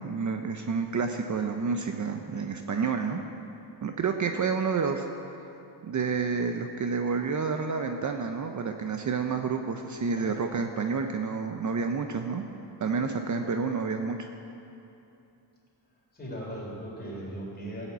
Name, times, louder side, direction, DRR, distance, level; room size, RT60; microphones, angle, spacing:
voice 1, 0.0-3.2 3.8-5.0 5.3-5.4 5.8-12.4 12.8-14.3, right 5 dB, 45° right, 5 dB, 0.7 m, -29 dB
voice 2, 16.1-17.9, right 1 dB, 20° left, -4 dB, 3.6 m, -38 dB
14.0 x 7.2 x 8.2 m, 2.8 s
wide cardioid pair, 120°, 43 cm